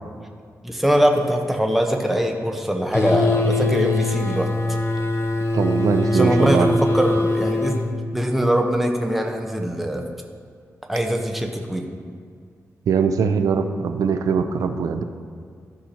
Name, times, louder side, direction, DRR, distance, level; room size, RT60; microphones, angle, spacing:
voice 1, 0.6-4.5 6.1-7.8 8.1-10.0 10.9-11.9, equal, 5° right, 2 dB, 0.9 m, -22 dB
sound 1, 2.9-7.9, left 2 dB, 50° left, 0.8 m, -22 dB
voice 2, 5.5-6.8 12.9-15.0, right 6 dB, 90° right, 8 dB, 0.5 m, -21 dB
14.5 x 5.7 x 2.9 m, 2.1 s
cardioid pair, 95°, 6 cm